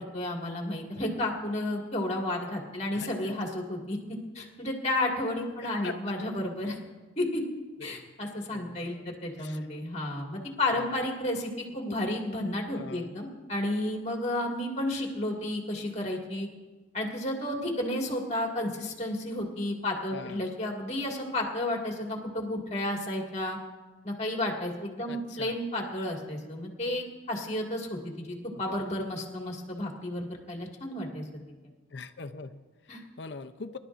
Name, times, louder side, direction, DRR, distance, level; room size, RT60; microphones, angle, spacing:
voice 1, 0.0-4.0 4.4-6.8 7.2-7.4 7.8-16.5 16.9-23.6 24.0-31.2 32.9-33.0, left 1 dB, 35° left, -1 dB, 1.9 m, -32 dB
voice 2, 2.9-3.3 5.6-6.0 7.9-8.1 8.5-9.6 10.7-10.9 11.9-12.0 12.8-13.2 20.1-20.5 25.1-25.6 31.9-33.8, left 4 dB, 55° left, 9 dB, 0.5 m, -43 dB
25.5 x 12.0 x 2.5 m, 1.3 s
head